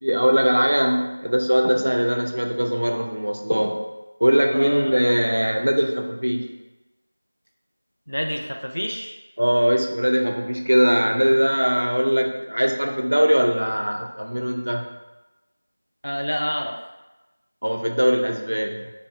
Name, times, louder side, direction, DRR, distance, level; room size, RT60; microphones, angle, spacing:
voice 1, 0.0-3.8 4.2-6.5 9.4-14.9 17.6-18.9, equal, 70° right, 2 dB, 0.4 m, -21 dB
voice 2, 4.5-4.9 8.1-9.2 16.0-16.8, equal, 85° left, 2 dB, 0.3 m, -28 dB
2.7 x 2.0 x 2.3 m, 1.1 s
figure-of-eight pair, 175°, 0 cm